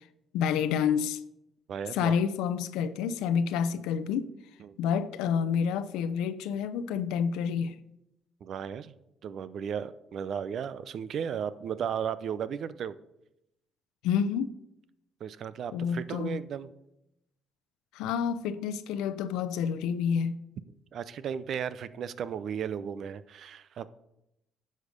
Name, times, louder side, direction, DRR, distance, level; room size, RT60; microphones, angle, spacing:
voice 1, 0.3-1.2 1.9-4.3 4.8-7.8 14.0-14.5 15.7-16.4 17.9-20.3, left 7 dB, 85° left, 0.6 m, -28 dB
voice 2, 1.7-2.2 4.6-4.8 8.4-9.0 9.2-12.9 15.2-16.7 20.9-23.9, right 8 dB, 65° right, 0.6 m, -35 dB
10.5 x 6.5 x 5.1 m
supercardioid pair, 70°, 0 cm